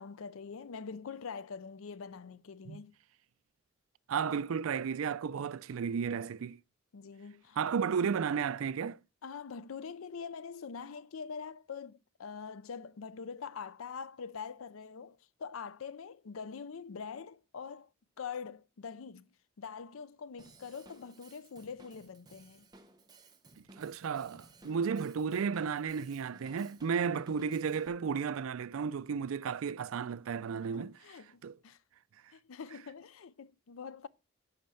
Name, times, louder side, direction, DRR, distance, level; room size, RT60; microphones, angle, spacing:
voice 1, 0.0-2.9 6.9-7.6 9.2-17.9 18.2-19.3 19.6-22.7 30.7-31.8 32.3-34.1, left 6 dB, 85° left, 0.5 m, -44 dB
voice 2, 4.1-6.6 7.6-9.0 23.8-30.9 31.4-31.6, right 6 dB, 90° right, 0.4 m, -33 dB
Drum kit / Drum, 20.4-27.9, right 2 dB, 20° right, 0.9 m, -59 dB
10.5 x 4.3 x 7.6 m
head